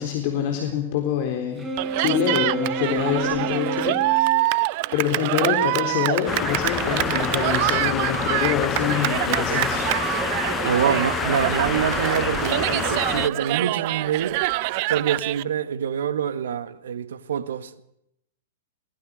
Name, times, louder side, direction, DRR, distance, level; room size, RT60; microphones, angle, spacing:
voice 1, 0.0-1.7 2.0-4.7 4.9-9.8, left 9 dB, 50° left, 3.9 m, -26 dB
Wind instrument woodwind instrument, 1.6-4.5, right 3 dB, 15° right, 5.7 m, -29 dB
Cheering, 1.8-15.4, right 20 dB, 45° right, 0.7 m, -25 dB
sound 1, 6.3-13.3, left 8 dB, 20° left, 0.7 m, -27 dB
voice 2, 10.6-14.4 14.9-17.8, right 8 dB, 65° right, 1.7 m, -26 dB
22.0 x 19.0 x 6.4 m
figure-of-eight pair, 110°, 0 cm